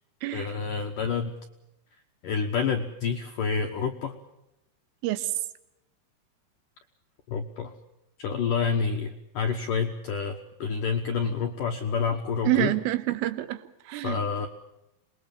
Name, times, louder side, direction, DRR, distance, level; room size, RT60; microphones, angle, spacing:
voice 1, 0.3-1.3 2.2-4.1 7.3-7.7 8.2-12.7 14.0-14.5, left 5 dB, 75° left, 5 dB, 1.9 m, -28 dB
voice 2, 12.5-14.2, right 16 dB, 85° right, 13 dB, 3.8 m, -27 dB
26.0 x 21.0 x 7.2 m, 0.87 s
omnidirectional pair, 5.8 m